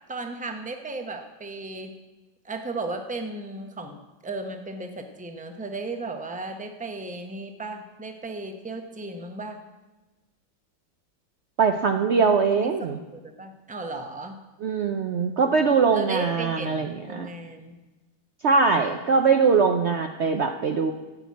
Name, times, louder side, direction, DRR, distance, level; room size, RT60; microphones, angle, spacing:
voice 1, 0.1-1.9 2.4-4.0 4.2-9.6 12.6-14.4 15.9-17.8 18.7-19.0 19.6-19.7, right 2 dB, 5° right, 5 dB, 0.6 m, -35 dB
voice 2, 11.6-13.0 14.6-17.3 18.4-20.9, right 5 dB, 85° right, 6 dB, 0.6 m, -22 dB
15.5 x 6.2 x 8.3 m, 1.2 s
omnidirectional pair, 2.0 m